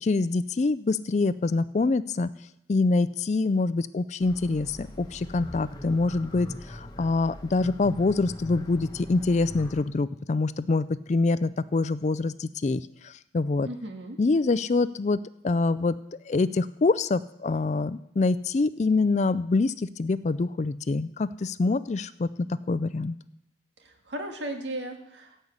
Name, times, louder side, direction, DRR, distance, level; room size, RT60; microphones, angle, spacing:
voice 1, 0.0-2.3 2.7-13.7 14.2-16.0 16.3-23.2, left 3 dB, 40° left, 16 dB, 0.4 m, -25 dB
sound 1, 4.2-9.8, left 1 dB, 25° left, 1.2 m, -42 dB
voice 2, 13.6-14.2 23.8-25.5, right 1 dB, 85° right, 4 dB, 1.8 m, -36 dB
16.0 x 5.5 x 8.0 m, 0.82 s
head